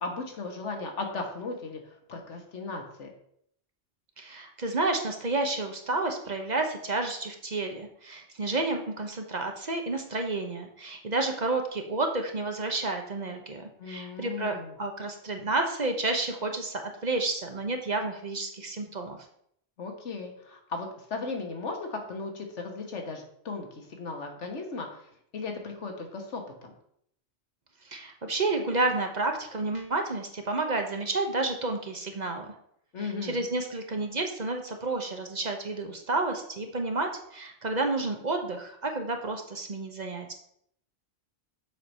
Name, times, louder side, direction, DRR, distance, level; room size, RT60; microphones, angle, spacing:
voice 1, 0.0-3.1 13.8-14.8 19.8-24.9 25.3-26.7 32.9-33.5, left 3 dB, 85° left, 3 dB, 1.6 m, -36 dB
voice 2, 4.2-19.2 27.8-32.5 33.0-40.3, right 2 dB, 40° right, 4 dB, 1.0 m, -30 dB
7.0 x 4.6 x 5.3 m, 0.70 s
omnidirectional pair, 1.2 m